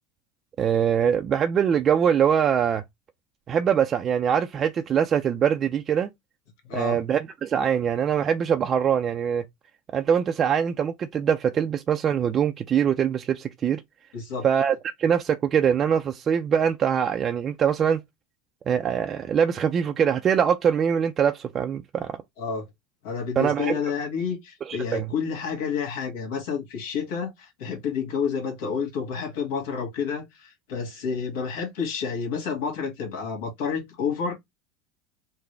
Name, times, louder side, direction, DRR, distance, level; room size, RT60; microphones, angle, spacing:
voice 1, 0.6-2.8 3.5-6.1 6.7-9.4 9.9-13.8 14.4-18.0 18.7-22.2 23.4-23.8 24.7-25.1, right 8 dB, 35° right, 0.4 m, -23 dB
voice 2, 6.6-7.0 14.1-14.5 22.4-22.7 23.0-34.3, left 6 dB, 75° left, 1.8 m, -29 dB
3.7 x 2.2 x 3.3 m
supercardioid pair, 115°, 0 cm